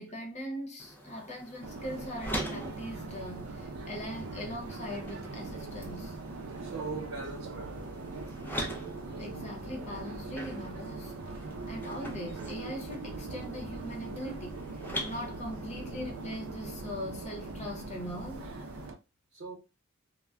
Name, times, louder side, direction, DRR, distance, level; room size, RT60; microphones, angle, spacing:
voice 1, 0.0-6.2 9.2-11.1 11.7-14.6 15.0-18.5, equal, 35° left, 0.8 m, -40 dB
sound 1, 0.8-18.9, equal, 10° left, 0.4 m, -44 dB
Subway metro underground, 1.6-18.9, right 3 dB, 85° right, 0.5 m, -41 dB
voice 2, 6.6-7.9 19.3-19.6, right 4 dB, 65° right, 1.0 m, -40 dB
2.2 x 2.1 x 3.5 m
head